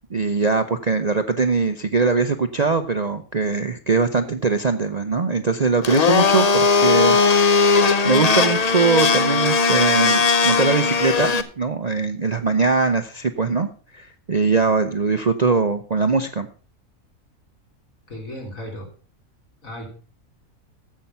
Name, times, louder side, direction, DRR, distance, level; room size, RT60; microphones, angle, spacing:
voice 1, 0.1-7.2 7.6-13.7 13.9-16.5, right 4 dB, 40° right, 8 dB, 0.6 m, -21 dB
Domestic sounds home sounds, 5.8-11.4, left 4 dB, 35° left, 0.7 m, -18 dB
voice 2, 18.1-18.9 19.6-19.9, equal, 70° left, 1 dB, 3.9 m, -34 dB
15.0 x 5.8 x 5.5 m, 0.39 s
omnidirectional pair, 1.5 m